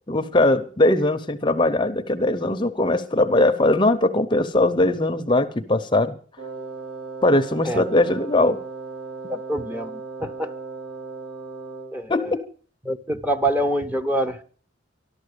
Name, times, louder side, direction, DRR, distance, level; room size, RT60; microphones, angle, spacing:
voice 1, 0.1-6.1 7.2-8.6 12.1-12.4, left 2 dB, 25° left, 0.7 m, -20 dB
Wind instrument woodwind instrument, 6.4-12.1, right 3 dB, 70° right, 3.9 m, -36 dB
voice 2, 9.3-10.5 11.9-12.4 12.8-14.4, right 1 dB, 10° right, 0.9 m, -26 dB
13.5 x 12.0 x 6.7 m
head